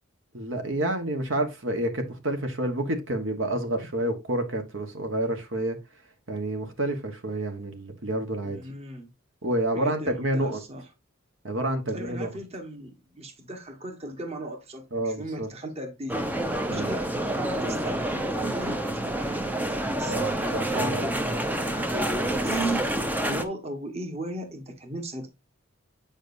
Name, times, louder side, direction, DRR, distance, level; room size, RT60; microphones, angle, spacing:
voice 1, 0.3-5.8 6.3-8.6 9.4-10.6 11.4-12.3 14.9-15.5 16.7-16.9 20.0-20.4 20.8-21.0, right 1 dB, 60° right, 1.3 m, -29 dB
voice 2, 8.4-9.1 9.7-10.9 11.9-21.2 22.3-22.8 23.2-25.3, right 1 dB, 30° right, 1.3 m, -37 dB
sound 1, 16.1-23.5, right 1 dB, 10° right, 0.6 m, -28 dB
8.9 x 5.2 x 2.6 m
head